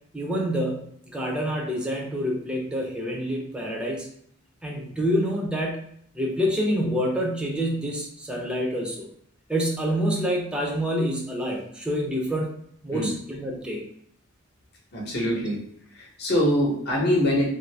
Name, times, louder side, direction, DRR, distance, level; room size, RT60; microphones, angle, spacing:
voice 1, 0.1-4.1 4.6-5.8 6.1-9.1 9.5-12.5 12.8-13.8, equal, 5° right, -2 dB, 0.5 m, -27 dB
voice 2, 14.9-15.6 15.9-17.5, equal, 50° left, -2 dB, 0.9 m, -24 dB
2.6 x 2.6 x 3.3 m, 0.68 s
head